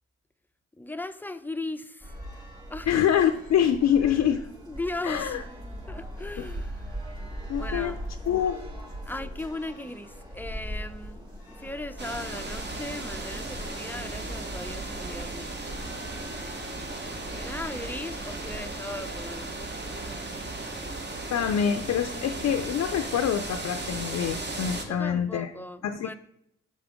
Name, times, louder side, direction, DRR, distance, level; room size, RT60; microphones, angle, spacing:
voice 1, 0.8-2.2 2.7-2.9 4.0-4.4 4.7-5.4 5.9-7.0 7.6-8.0 9.0-15.7 17.3-20.5 24.8-26.1, left 2 dB, 5° left, 10 dB, 0.5 m, -38 dB
sound 1, 2.0-17.8, equal, 15° right, 2.1 m, -41 dB
voice 2, 2.9-4.4 5.0-5.4 6.4-6.5 7.5-7.9 8.3-8.6 21.3-25.5 25.8-26.1, left 9 dB, 60° left, 6 dB, 0.5 m, -25 dB
sound 2, 12.0-24.8, right 2 dB, 35° right, 1.1 m, -36 dB
6.7 x 5.0 x 3.5 m, 0.76 s
cardioid pair, 65°, 29 cm